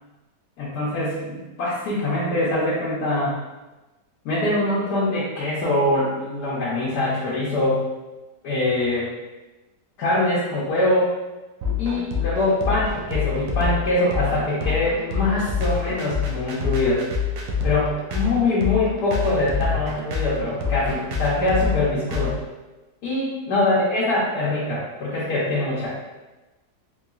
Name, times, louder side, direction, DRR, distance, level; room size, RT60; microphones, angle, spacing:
voice 1, 0.6-3.3 4.2-7.8 8.4-9.1 10.0-11.1 11.8-17.1 17.6-22.4 23.0-25.9, left 2 dB, 80° left, -8 dB, 1.3 m, -23 dB
sound 1, 11.6-22.3, left 6 dB, 70° right, 0.9 m, -26 dB
3.8 x 3.1 x 2.4 m, 1.1 s
omnidirectional pair, 1.8 m